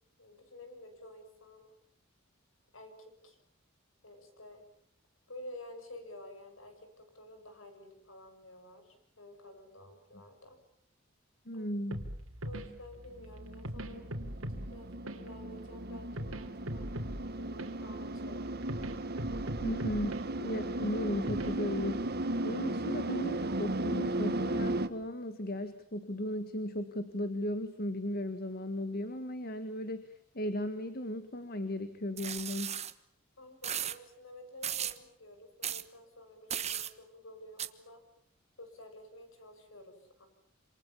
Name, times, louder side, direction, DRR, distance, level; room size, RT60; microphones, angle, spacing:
voice 1, 0.2-1.6 2.7-3.4 4.0-4.6 5.3-10.6 11.5-12.0 12.4-14.1 14.7-17.0 17.4-18.5 33.4-38.0 38.6-40.3, left 1 dB, 70° left, 7 dB, 7.1 m, -51 dB
voice 2, 11.4-12.0 19.6-22.0 22.4-30.1 30.3-32.7, left 1 dB, 50° left, 10 dB, 1.8 m, -36 dB
sound 1, 11.9-22.0, equal, 85° right, 3.3 m, -42 dB
sound 2, 13.2-24.9, right 2 dB, 50° right, 1.5 m, -36 dB
sound 3, 32.2-32.9 33.6-34.0 34.6-35.0 35.6-35.8 36.5-36.9 37.6-37.7, right 9 dB, 35° right, 1.3 m, -35 dB
27.5 x 27.0 x 7.3 m, 0.68 s
head